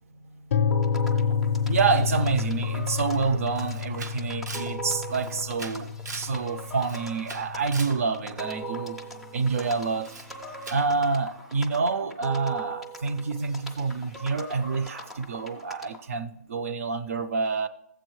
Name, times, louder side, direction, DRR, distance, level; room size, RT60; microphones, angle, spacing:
sound 1, 0.5-8.4, left 6 dB, 55° left, 0.5 m, -29 dB
sound 2, 0.7-16.1, right 2 dB, ahead, 0.4 m, -41 dB
voice 1, 1.7-9.0 9.3-10.1 10.5-17.7, right 4 dB, 55° right, 0.5 m, -28 dB
Camera, 3.1-3.2 3.6-6.4 6.7-8.0 10.0-10.3 10.6-10.9, right 4 dB, 90° right, 0.8 m, -41 dB
13.0 x 7.8 x 3.1 m
hypercardioid pair, 170°, 9 cm